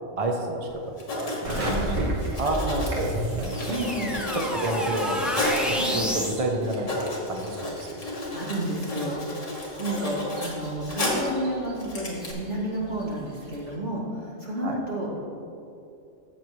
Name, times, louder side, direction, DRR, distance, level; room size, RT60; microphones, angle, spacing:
voice 1, 0.2-0.8 1.1-1.7 2.0-3.5 4.3-7.9 14.6-14.8, right 1 dB, 35° right, 2 dB, 0.7 m, -30 dB
Writing, 0.7-0.8 1.0-5.7 6.3-6.4 6.6-11.4 11.8-12.3, left 2 dB, 70° left, 2.1 m, -32 dB
sound 1, 1.4-13.7, right 1 dB, 80° right, 1.7 m, -38 dB
voice 2, 1.5-2.0 3.7-4.2 5.7-6.0 7.8-8.0 8.3-15.2, right 1 dB, 65° right, -6 dB, 2.7 m, -31 dB
sound 2, 2.5-6.4, equal, ahead, 0.9 m, -30 dB
14.0 x 7.3 x 3.1 m, 2.6 s
omnidirectional pair, 1.3 m